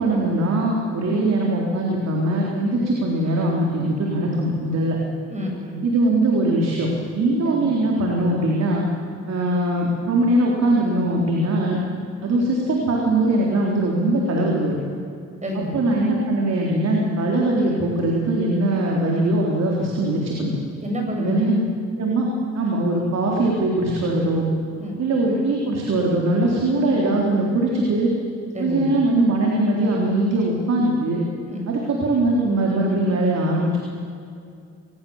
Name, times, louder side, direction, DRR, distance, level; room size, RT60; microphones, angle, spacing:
voice 1, 0.0-5.0 5.8-8.8 9.3-11.8 12.2-14.8 15.7-20.5 21.2-21.7 22.0-22.3 22.5-24.5 25.0-28.1 28.6-31.2 31.7-33.8, right 1 dB, 60° right, -2 dB, 3.8 m, -21 dB
voice 2, 5.3-5.8 7.4-7.7 15.4-15.8 20.8-21.5 24.8-25.0 28.5-29.0 31.5-31.7, left 1 dB, 25° right, 0 dB, 7.5 m, -29 dB
23.5 x 20.0 x 7.3 m, 2.4 s
cardioid pair, 90°, 30 cm